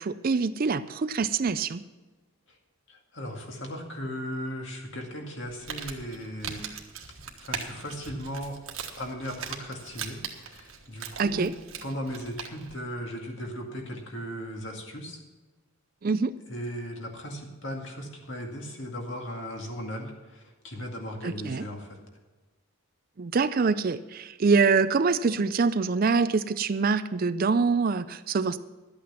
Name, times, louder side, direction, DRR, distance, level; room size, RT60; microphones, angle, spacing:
voice 1, 0.0-1.8 11.2-11.5 16.0-16.3 21.2-21.7 23.2-28.6, right 4 dB, 40° right, 13 dB, 0.4 m, -25 dB
voice 2, 2.9-6.7 7.4-8.6 9.0-11.5 11.8-15.2 16.5-22.0, equal, 55° left, 1 dB, 2.2 m, -37 dB
Crumpling crinkling, 5.4-12.8, right 7 dB, 70° right, 1.4 m, -40 dB
12.0 x 8.6 x 5.7 m, 1.2 s
head